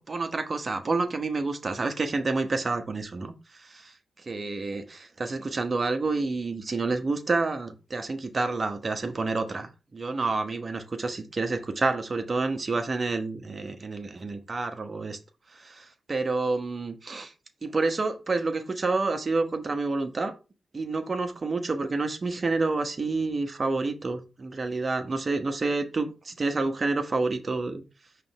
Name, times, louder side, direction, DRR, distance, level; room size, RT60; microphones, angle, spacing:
voice 1, 0.0-3.9 4.3-15.2 15.5-17.3 17.6-20.3 20.7-27.8, right 3 dB, 45° right, 6 dB, 1.2 m, -29 dB
5.5 x 3.4 x 5.3 m, 0.31 s
cardioid pair, 55°, 0 cm